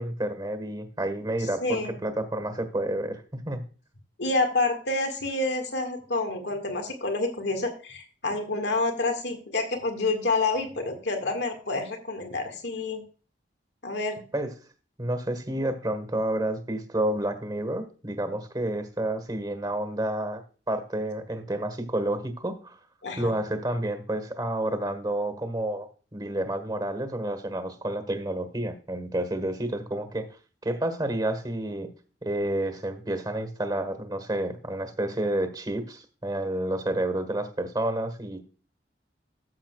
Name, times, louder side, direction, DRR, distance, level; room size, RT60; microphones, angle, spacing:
voice 1, 0.0-3.6 14.3-14.5 15.0-20.4 20.7-22.8 23.2-30.3 30.6-31.9 32.2-38.4, right 1 dB, 25° right, 8 dB, 1.5 m, -30 dB
voice 2, 1.6-1.9 4.2-13.0 13.8-14.2 23.0-23.3, left 3 dB, 75° left, 4 dB, 1.9 m, -28 dB
14.0 x 7.4 x 2.4 m, 0.37 s
head